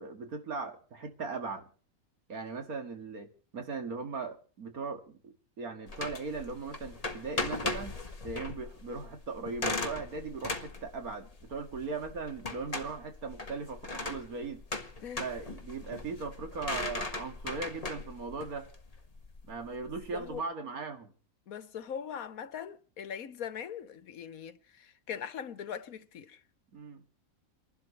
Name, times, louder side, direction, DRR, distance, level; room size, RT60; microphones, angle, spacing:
voice 1, 0.0-1.6 2.3-7.9 8.2-14.6 15.2-18.7 19.5-21.1 26.7-27.0, right 4 dB, 85° right, 2.5 m, -39 dB
sound 1, 5.9-20.4, left 2 dB, 25° left, 1.4 m, -39 dB
voice 2, 21.5-26.4, left 8 dB, 80° left, 1.5 m, -41 dB
29.0 x 12.0 x 3.1 m
omnidirectional pair, 1.5 m